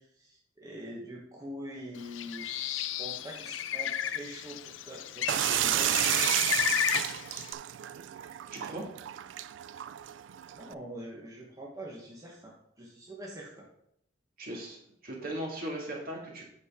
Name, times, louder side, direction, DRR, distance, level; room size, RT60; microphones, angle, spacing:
voice 1, 0.0-6.0 10.5-13.7, equal, 20° right, -3 dB, 1.2 m, -44 dB
Bird, 2.0-7.5, left 10 dB, 80° left, 0.4 m, -33 dB
sound 1, 5.3-10.7, right 13 dB, 70° right, 0.3 m, -31 dB
voice 2, 8.5-8.9 14.4-16.4, right 1 dB, 50° right, -2 dB, 2.2 m, -38 dB
8.5 x 6.5 x 3.7 m, 0.73 s
head